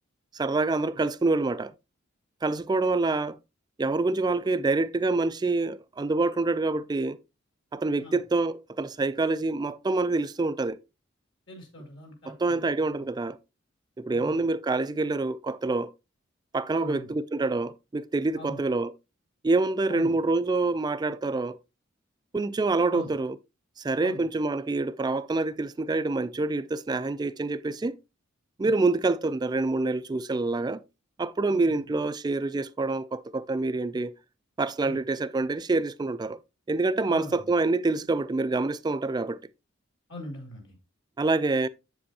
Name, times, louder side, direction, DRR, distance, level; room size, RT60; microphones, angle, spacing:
voice 1, 0.3-1.7 2.4-3.4 3.8-7.2 7.7-10.8 12.3-13.4 14.0-15.9 16.5-18.9 19.4-21.6 22.3-23.4 23.8-28.0 28.6-30.8 31.2-34.1 34.6-36.4 36.7-39.4 41.2-41.7, right 3 dB, 20° right, 0.3 m, -26 dB
voice 2, 11.5-12.7 14.1-14.4 16.7-17.1 18.3-18.6 19.9-20.1 22.9-23.1 24.0-24.2 28.6-28.7 31.5-31.8 34.8-35.0 37.1-37.5 40.1-40.8, left 1 dB, 65° left, 2.5 m, -42 dB
7.9 x 7.5 x 2.8 m
head